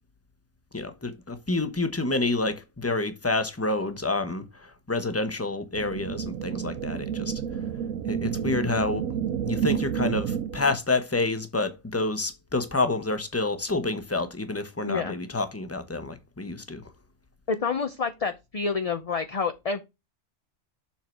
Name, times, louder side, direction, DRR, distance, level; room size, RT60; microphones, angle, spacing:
voice 1, 0.7-7.3 8.1-9.1 9.5-16.8, left 2 dB, 10° left, 0.9 m, -28 dB
sound 1, 5.7-10.8, right 8 dB, 80° right, 1.1 m, -30 dB
voice 2, 14.8-15.2 17.5-19.8, left 5 dB, 35° left, 0.6 m, -28 dB
7.3 x 4.6 x 4.6 m
omnidirectional pair, 1.3 m